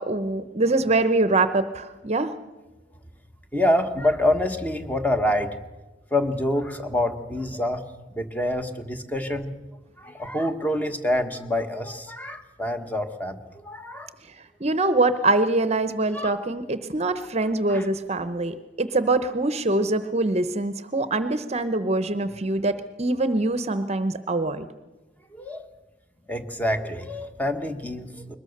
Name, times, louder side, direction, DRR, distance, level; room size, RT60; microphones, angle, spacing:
voice 1, 0.0-2.3 14.6-24.6, right 2 dB, 35° right, 12 dB, 0.8 m, -24 dB
voice 2, 3.5-5.6 6.1-7.8 8.1-9.5 10.0-14.1 16.1-16.4 17.7-17.9 25.3-25.7 26.3-28.4, left 1 dB, 10° left, 7 dB, 1.3 m, -26 dB
22.0 x 20.0 x 6.6 m, 1.1 s
head